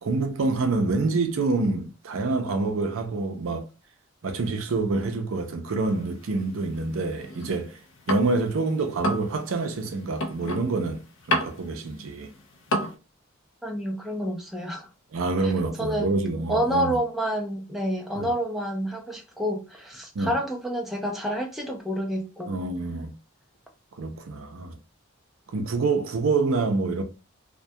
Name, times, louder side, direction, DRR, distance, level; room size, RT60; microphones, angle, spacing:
voice 1, 0.0-3.6 4.2-7.8 8.1-11.0 11.3-12.3 15.1-16.9 18.2-18.3 20.1-20.3 22.5-23.1 24.0-24.8 25.5-27.0, right 3 dB, 75° right, 0.5 m, -27 dB
sound 1, 5.9-8.6 8.9-12.9, left 1 dB, 65° left, 0.4 m, -31 dB
voice 2, 13.6-14.9 15.4-15.5 15.8-16.1 16.5-22.6, equal, ahead, 0.4 m, -28 dB
2.2 x 2.1 x 2.6 m
head